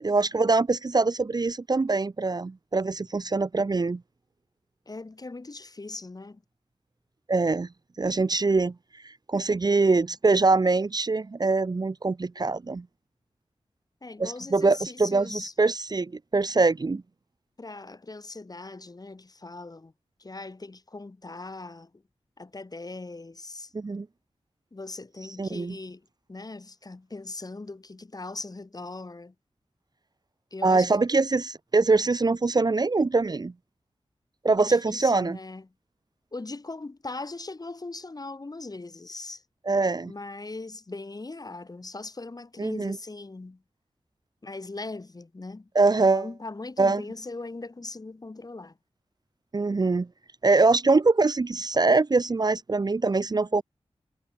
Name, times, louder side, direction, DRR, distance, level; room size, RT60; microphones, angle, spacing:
voice 1, 0.0-4.0 7.3-7.7 8.0-8.7 9.0-12.8 14.2-17.0 23.7-24.1 25.4-25.8 30.6-33.5 34.4-35.4 39.7-40.1 42.6-43.0 45.7-46.3 46.8-47.0 49.5-50.1 50.4-53.6, right 3 dB, 35° right, 0.6 m, -23 dB
voice 2, 4.9-6.4 14.0-15.5 17.6-19.9 20.2-21.9 22.4-23.7 24.7-26.0 26.3-29.3 30.5-31.0 34.6-35.7 36.3-39.4 40.0-43.6 44.4-45.7 46.0-48.8, left 3 dB, 35° left, 1.6 m, -40 dB
wide cardioid pair, 90°, 11 cm